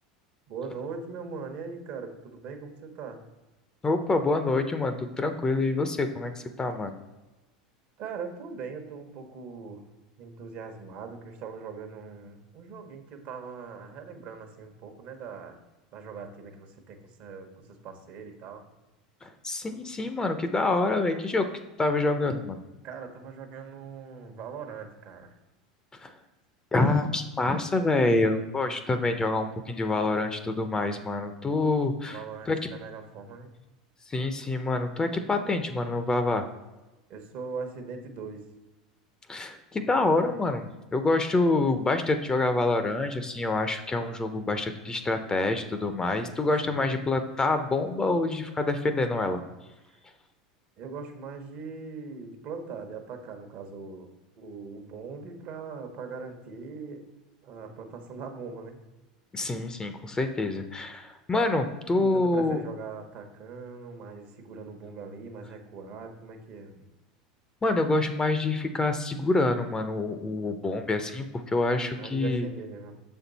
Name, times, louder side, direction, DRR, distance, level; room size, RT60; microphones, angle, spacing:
voice 1, 0.5-3.2 8.0-9.8 10.2-15.6 15.9-18.6 22.8-25.3 32.0-33.5 37.1-38.4 46.6-46.9 49.9-50.0 50.8-54.1 54.4-57.0 57.4-58.8 62.0-66.9 71.9-73.0, right 5 dB, 55° right, 5 dB, 1.1 m, -40 dB
voice 2, 3.8-6.9 19.2-21.5 21.8-22.6 25.9-26.1 26.7-32.2 32.5-32.6 34.1-36.5 39.3-40.7 40.9-49.4 59.3-62.6 67.6-72.5, left 2 dB, 20° left, 8 dB, 0.6 m, -26 dB
6.6 x 4.4 x 4.0 m, 1.1 s
hypercardioid pair, 90°, 4 cm